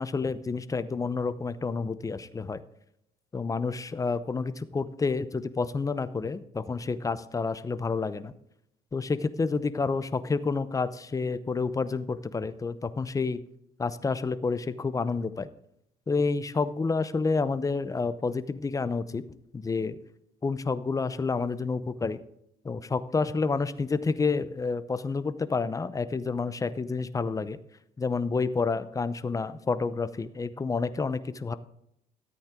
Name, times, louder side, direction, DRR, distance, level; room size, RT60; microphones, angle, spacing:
voice 1, 0.0-2.6 3.3-8.3 8.9-13.4 13.8-15.5 16.1-19.2 19.5-19.9 20.4-22.2 22.6-27.6 28.0-31.6, left 4 dB, 20° left, 13 dB, 0.7 m, -29 dB
13.5 x 8.6 x 3.7 m, 0.76 s
cardioid pair, 110°, 17 cm